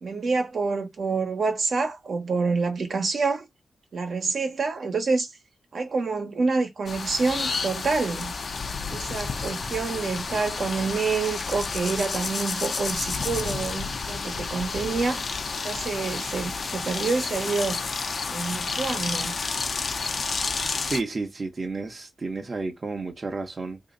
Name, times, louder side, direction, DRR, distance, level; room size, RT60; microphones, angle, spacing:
voice 1, 0.0-3.5 3.9-5.3 5.7-8.3 8.9-15.3 15.6-17.8 18.3-19.4, right 4 dB, 65° right, 1.1 m, -27 dB
sound 1, 6.9-21.0, left 4 dB, 55° left, 0.6 m, -30 dB
voice 2, 20.9-23.8, right 3 dB, 40° right, 0.9 m, -31 dB
3.1 x 2.8 x 3.8 m
wide cardioid pair, 105°, 0 cm